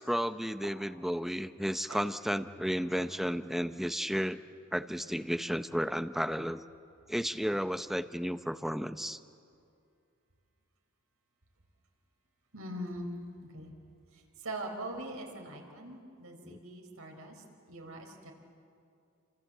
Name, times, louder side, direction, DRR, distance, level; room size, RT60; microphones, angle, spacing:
voice 1, 0.0-4.4 4.7-6.6 7.1-9.2 16.4-16.6, equal, ahead, 10 dB, 0.7 m, -33 dB
voice 2, 12.5-13.1 13.5-13.7 14.4-18.3, right 1 dB, 80° right, 2 dB, 4.4 m, -42 dB
28.5 x 26.5 x 7.8 m, 2.5 s
head